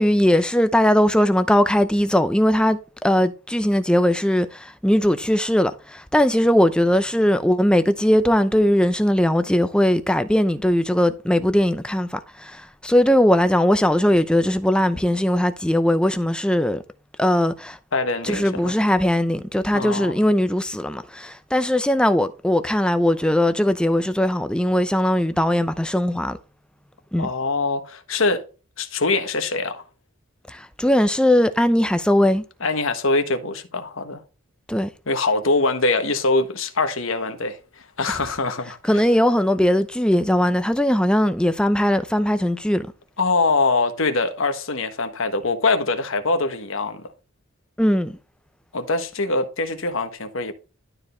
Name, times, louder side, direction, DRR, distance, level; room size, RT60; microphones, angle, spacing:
voice 1, 0.0-16.8 17.2-17.8 18.2-26.4 27.1-27.3 30.5-32.4 34.7-34.9 38.9-42.9 47.8-48.2, equal, 5° left, 0.6 m, -19 dB
voice 2, 17.9-18.7 19.7-20.1 27.2-28.4 28.8-29.8 32.6-34.2 35.1-39.0 43.2-47.1 48.7-50.5, left 3 dB, 75° left, 1.4 m, -23 dB
12.0 x 4.7 x 3.3 m
head